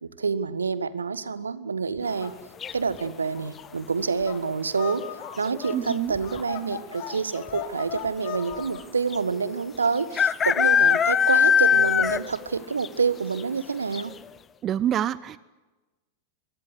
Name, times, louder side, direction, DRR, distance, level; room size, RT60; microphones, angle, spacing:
voice 1, 0.0-2.3 2.7-5.0 5.4-14.1, right 5 dB, 75° right, 15 dB, 1.5 m, -27 dB
sound 1, 2.0-8.8, left 11 dB, 45° left, 3.3 m, -39 dB
sound 2, 2.6-3.1 4.9-5.3 5.5-5.6 5.9-6.4 7.2-7.3 7.5-7.6 9.1-9.2 10.1-12.4 12.8-12.9 13.4-13.5 13.9-14.0, left 7 dB, 20° left, 0.8 m, -21 dB
voice 2, 5.7-6.1 14.6-15.4, right 10 dB, 30° right, 19 dB, 0.7 m, -26 dB
23.0 x 22.5 x 8.1 m, 1.1 s
figure-of-eight pair, 90°, 0 cm